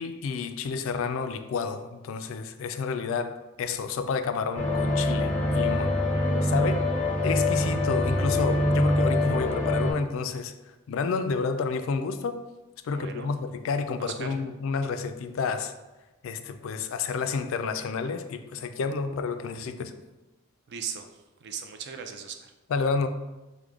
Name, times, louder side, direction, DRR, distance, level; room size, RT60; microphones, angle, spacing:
voice 1, 0.0-6.0 6.3-6.9 7.2-10.5 10.9-12.4 12.8-15.7 16.2-19.9 22.7-23.1, left 5 dB, 60° left, 8 dB, 0.3 m, -30 dB
sound 1, 4.5-9.9, left 1 dB, 10° left, 0.6 m, -25 dB
voice 2, 6.1-6.4 12.9-13.3 14.0-14.3 20.7-21.1 21.4-22.5, right 7 dB, 50° right, 5 dB, 0.4 m, -38 dB
4.8 x 2.2 x 3.5 m, 1.1 s
head